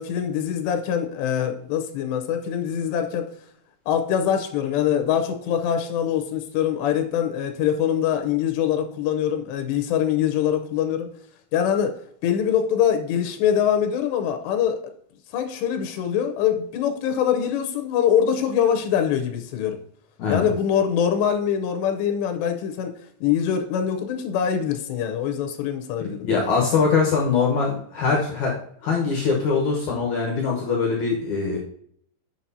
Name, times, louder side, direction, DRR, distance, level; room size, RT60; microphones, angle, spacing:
voice 1, 0.0-3.3 3.9-11.1 11.5-12.0 12.2-14.9 15.3-19.8 20.3-22.9 23.2-26.3, left 9 dB, 90° left, 6 dB, 3.0 m, -23 dB
voice 2, 26.2-28.5 28.8-31.6, left 5 dB, 70° left, -1 dB, 1.9 m, -22 dB
7.8 x 7.6 x 2.8 m, 0.64 s
omnidirectional pair, 4.9 m